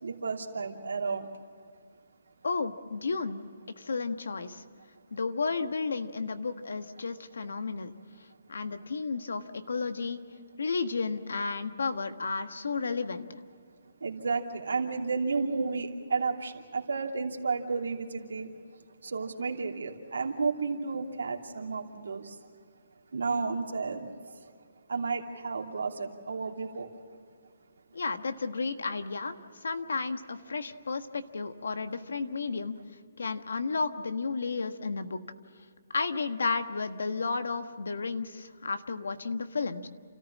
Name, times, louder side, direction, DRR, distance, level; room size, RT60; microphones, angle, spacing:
voice 1, 0.0-1.3 14.0-18.5 19.0-22.3 23.1-24.1 24.9-26.9, right 4 dB, 85° right, 2.8 m, -32 dB
voice 2, 2.4-3.4 3.8-4.6 5.1-7.9 8.5-10.2 10.6-13.4 27.9-32.7 33.2-35.2 35.9-39.9, left 4 dB, 85° left, 1.5 m, -32 dB
29.5 x 14.0 x 7.5 m
hypercardioid pair, 160°, 0 cm